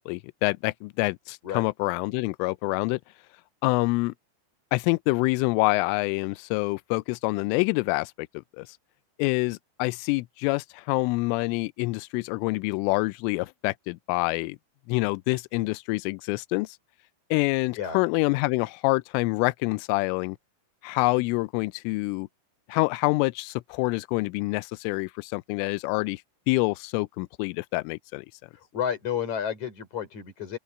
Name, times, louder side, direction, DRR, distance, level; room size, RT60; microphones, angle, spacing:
voice 1, 0.1-3.0 3.6-4.1 4.7-8.3 8.6-8.7 9.2-14.6 14.9-16.8 17.3-20.4 20.8-22.3 22.7-26.2 26.5-28.3, left 25 dB, 85° left, 3.1 m, -26 dB
voice 2, 28.5-30.6, left 8 dB, 40° left, 5.9 m, -31 dB
open air
omnidirectional pair, 5.7 m